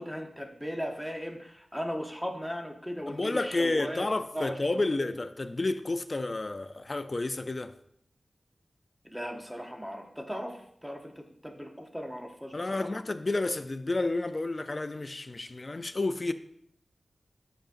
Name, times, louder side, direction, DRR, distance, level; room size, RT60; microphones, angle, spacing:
voice 1, 0.0-4.1 4.3-4.6 4.9-5.1 9.0-12.9, equal, ahead, 0.8 m, -37 dB
voice 2, 3.1-7.7 12.5-16.3, left 2 dB, 35° left, 0.4 m, -30 dB
9.1 x 5.0 x 2.6 m
wide cardioid pair, 100°, 0 cm